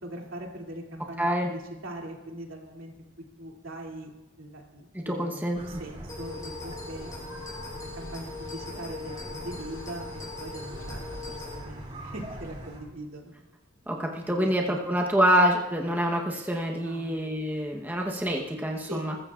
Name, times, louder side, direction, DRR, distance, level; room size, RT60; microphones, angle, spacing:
voice 1, 0.0-3.1 3.4-4.1 4.4-7.1 8.0-13.3 14.3-14.8 16.8-17.2 18.8-19.1, right 1 dB, 80° right, 0 dB, 2.6 m, -41 dB
voice 2, 1.2-1.5 4.9-5.6 13.9-19.2, equal, 10° right, 0 dB, 1.0 m, -26 dB
sound 1, 5.5-12.8, right 1 dB, 30° right, 2.6 m, -42 dB
sound 2, 6.1-11.6, left 4 dB, 15° left, 4.7 m, -41 dB
21.5 x 14.5 x 2.5 m, 1.1 s
head